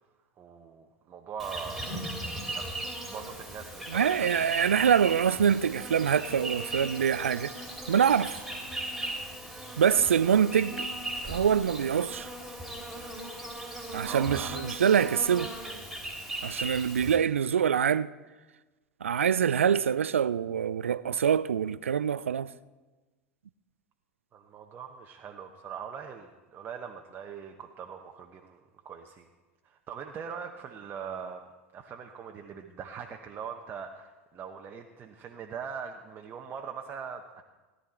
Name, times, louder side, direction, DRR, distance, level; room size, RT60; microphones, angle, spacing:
voice 1, 0.4-4.5 14.0-14.6 24.3-29.3 29.6-31.4 31.7-37.4, right 7 dB, 30° right, 1.1 m, -42 dB
Insect, 1.4-17.2, right 1 dB, ahead, 3.7 m, -38 dB
voice 2, 3.9-8.4 9.8-10.9 11.2-12.3 13.9-15.5 16.4-18.1 19.0-22.5, right 8 dB, 80° right, 0.4 m, -25 dB
17.5 x 11.0 x 4.4 m
figure-of-eight pair, 85°, 7 cm